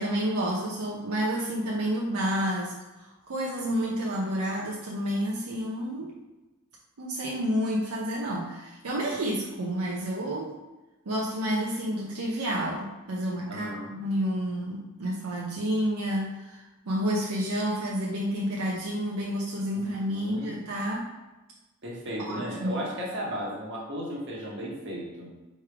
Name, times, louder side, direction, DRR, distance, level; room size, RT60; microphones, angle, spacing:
voice 1, 0.0-6.1 7.0-10.6 11.1-21.1 22.3-22.8, equal, 85° right, -3 dB, 0.7 m, -30 dB
voice 2, 13.5-13.9 19.7-20.6 21.8-25.3, equal, 55° right, -3 dB, 1.2 m, -35 dB
3.5 x 3.2 x 4.6 m, 1.1 s
head